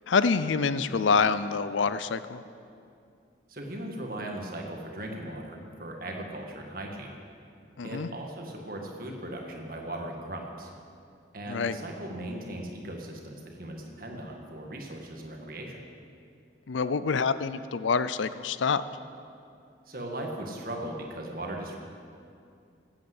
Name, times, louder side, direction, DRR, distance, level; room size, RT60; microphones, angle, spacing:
voice 1, 0.1-2.4 7.8-8.1 11.5-11.8 16.7-18.8, left 5 dB, 85° left, 14 dB, 0.5 m, -26 dB
voice 2, 3.5-7.2 7.8-10.7 11.3-15.8 19.9-21.8, right 1 dB, 50° right, 1 dB, 1.8 m, -38 dB
14.5 x 8.8 x 7.9 m, 2.5 s
head